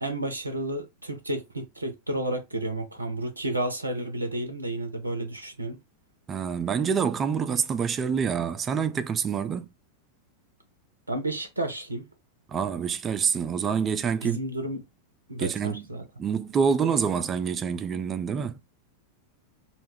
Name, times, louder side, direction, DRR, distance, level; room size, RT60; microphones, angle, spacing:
voice 1, 0.0-5.8 11.1-12.1 14.2-14.8 15.3-16.0, right 1 dB, 80° right, 0.5 m, -31 dB
voice 2, 6.3-9.7 12.5-14.4 15.4-15.9 16.2-18.6, right 6 dB, 25° right, 0.3 m, -26 dB
2.2 x 2.1 x 3.3 m
figure-of-eight pair, 90°, 0 cm